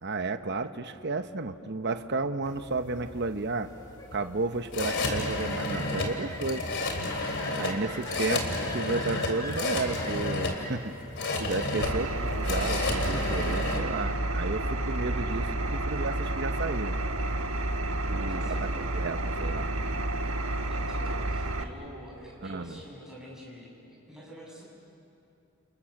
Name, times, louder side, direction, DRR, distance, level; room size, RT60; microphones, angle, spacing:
voice 1, 0.0-3.7 4.1-6.6 7.6-8.4 8.7-10.9 11.4-16.9 18.1-19.7 22.4-22.8, right 3 dB, 50° right, 9 dB, 1.0 m, -32 dB
sound 1, 2.4-13.8, left 2 dB, 55° left, 3.2 m, -32 dB
sound 2, 3.6-11.2, left 1 dB, 15° left, 2.9 m, -43 dB
voice 2, 7.5-8.3 18.1-18.7 20.7-24.7, equal, 5° right, -5 dB, 7.1 m, -47 dB
Engine, 11.8-21.6, right 2 dB, 70° right, 1.3 m, -30 dB
30.0 x 29.0 x 6.6 m, 2.7 s
head